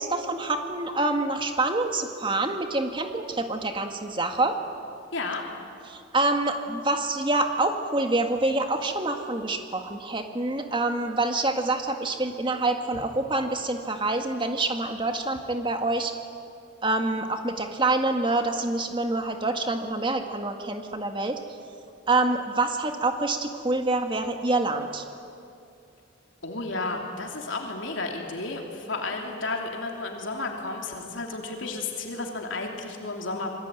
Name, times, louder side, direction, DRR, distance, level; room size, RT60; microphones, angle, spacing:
voice 1, 0.0-4.6 5.9-16.1 16.8-21.4 22.1-25.0, right 2 dB, 25° right, 5 dB, 1.9 m, -26 dB
voice 2, 5.1-5.4 26.4-33.5, left 3 dB, 75° left, 1 dB, 3.0 m, -32 dB
27.0 x 22.0 x 9.2 m, 2.6 s
head